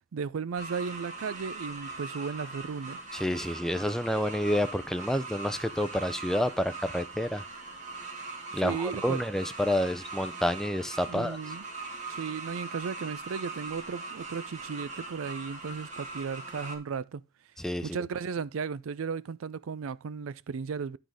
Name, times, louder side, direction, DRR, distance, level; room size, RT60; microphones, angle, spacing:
voice 1, 0.1-3.0 8.5-9.2 11.1-11.6 12.1-17.2 17.8-21.0, right 5 dB, 80° right, 0.4 m, -35 dB
sound 1, 0.6-16.8, right 3 dB, 35° right, 2.0 m, -41 dB
voice 2, 3.1-7.4 8.5-11.4 17.6-18.0, equal, ahead, 0.5 m, -29 dB
11.5 x 3.9 x 4.8 m
head